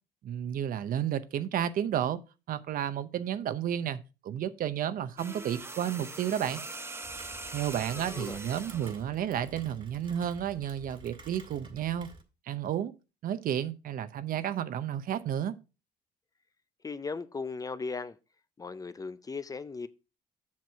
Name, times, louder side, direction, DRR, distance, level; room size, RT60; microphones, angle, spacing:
voice 1, 0.2-2.2 2.5-6.6 7.5-12.1 12.5-12.9 13.2-15.5, right 10 dB, 55° right, 0.7 m, -32 dB
sound 1, 5.2-9.0 10.2-10.4, right 2 dB, 15° right, 0.8 m, -42 dB
Rain, 7.0-12.2, right 3 dB, 30° right, 1.6 m, -51 dB
voice 2, 8.0-8.4 16.8-18.2 18.6-19.9, left 4 dB, 20° left, 0.5 m, -37 dB
7.5 x 6.0 x 4.5 m
cardioid pair, 110°, 17 cm